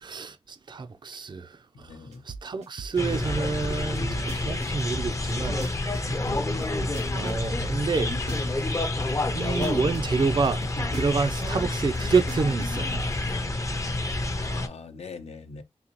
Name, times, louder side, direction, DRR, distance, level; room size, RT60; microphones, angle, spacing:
voice 1, 0.0-1.5 2.3-5.6 7.1-8.1 9.3-10.6 10.9-13.0, right 4 dB, 40° right, 0.4 m, -28 dB
voice 2, 1.8-2.2 9.0-9.4 14.2-15.6, left 4 dB, 70° left, 0.6 m, -43 dB
sound 1, 2.1-8.8 9.3-13.3, right 5 dB, 85° right, 0.7 m, -39 dB
sound 2, 3.0-14.7, left 2 dB, 30° left, 0.5 m, -28 dB
3.9 x 2.7 x 3.0 m
wide cardioid pair, 85°, 11 cm